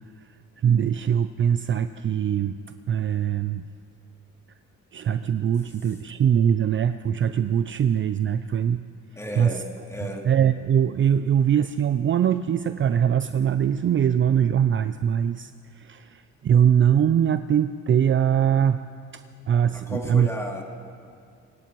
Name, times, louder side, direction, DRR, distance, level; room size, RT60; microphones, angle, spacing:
voice 1, 0.6-2.6 2.9-3.6 4.9-8.8 9.4-9.5 10.3-15.5 15.8-18.8 19.5-20.3, right 8 dB, 40° right, 11 dB, 0.4 m, -22 dB
voice 2, 9.2-10.3 19.7-20.6, left 1 dB, 10° left, -1 dB, 2.8 m, -33 dB
26.0 x 16.5 x 3.1 m, 2.3 s
cardioid pair, 90°, 30 cm